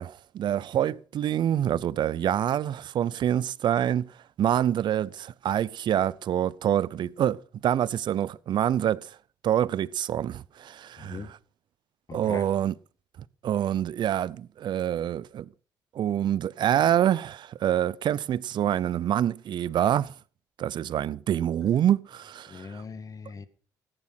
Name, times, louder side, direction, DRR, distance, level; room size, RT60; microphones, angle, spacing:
voice 1, 0.0-4.1 4.4-9.1 9.4-11.2 12.1-12.7 13.4-15.5 15.9-20.1 20.6-22.8, right 10 dB, 60° right, 0.7 m, -26 dB
voice 2, 11.0-11.3 12.1-12.5 21.6-21.7 22.5-23.5, left 5 dB, 40° left, 1.9 m, -40 dB
14.5 x 10.0 x 5.8 m
hypercardioid pair, 60°, 9 cm